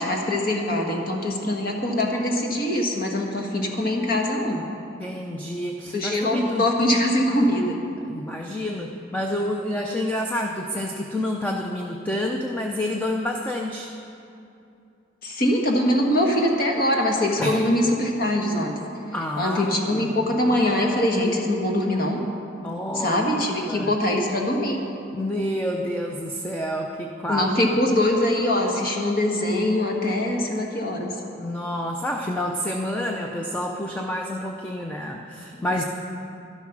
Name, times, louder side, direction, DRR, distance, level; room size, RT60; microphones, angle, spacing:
voice 1, 0.0-4.6 5.9-7.8 15.2-18.7 19.4-22.2 22.9-24.8 27.3-31.1, left 1 dB, 45° left, 1 dB, 1.5 m, -23 dB
voice 2, 5.0-6.7 8.1-13.9 17.4-17.6 19.1-20.3 22.6-23.2 23.7-23.9 25.1-27.5 31.4-35.8, left 1 dB, 10° left, 1 dB, 0.5 m, -28 dB
12.0 x 11.5 x 6.0 m, 2.7 s
head